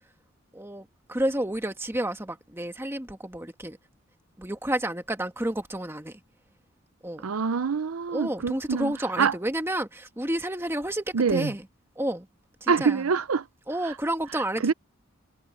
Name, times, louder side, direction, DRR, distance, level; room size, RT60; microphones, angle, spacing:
voice 1, 0.5-3.8 4.4-6.2 7.0-7.3 8.1-11.7 11.9-12.3 12.6-13.1 13.7-14.7, right 1 dB, 10° right, 1.4 m, -30 dB
voice 2, 7.2-8.9 9.2-9.3 11.1-11.5 12.7-13.4 14.6-14.7, right 5 dB, 85° right, 0.6 m, -25 dB
head